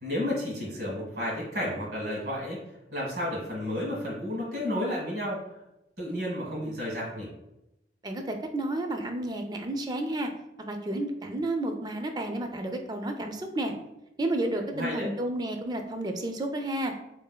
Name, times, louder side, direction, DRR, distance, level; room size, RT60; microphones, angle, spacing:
voice 1, 0.0-2.6 2.9-5.5 6.0-7.3 14.7-15.1, left 1 dB, 65° right, -4 dB, 1.4 m, -32 dB
voice 2, 8.0-10.3 10.7-13.7 14.2-16.9, right 1 dB, 25° right, 5 dB, 0.3 m, -31 dB
3.5 x 3.2 x 2.2 m, 0.89 s
head